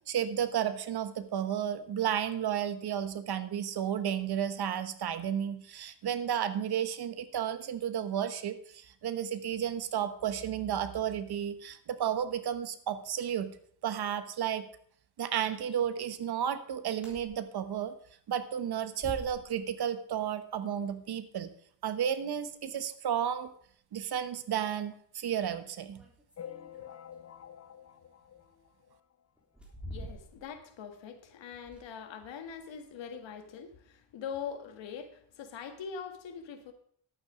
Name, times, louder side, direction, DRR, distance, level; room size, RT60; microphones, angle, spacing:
voice 1, 0.1-13.5 13.8-14.7 15.2-17.9 18.3-21.5 21.8-23.5 23.9-26.0, right 9 dB, 50° right, 12 dB, 1.1 m, -32 dB
sound 1, 17.0-17.3 17.7-17.8 19.0-19.7 22.4-22.5 23.6-23.7 24.0-24.2 24.7-24.8 26.0-27.4 28.4-28.5 29.4-30.6 30.9-31.0 31.6-32.1 32.5-32.8, equal, ahead, 3.5 m, -46 dB
sound 2, 26.4-29.2 29.7-29.8 30.0-30.1 30.4-30.5 31.4-31.5 31.9-32.0, left 9 dB, 30° left, 0.6 m, -48 dB
voice 2, 29.9-36.7, left 7 dB, 65° left, 7 dB, 1.8 m, -42 dB
11.0 x 8.7 x 5.0 m, 0.62 s
cardioid pair, 105°, 48 cm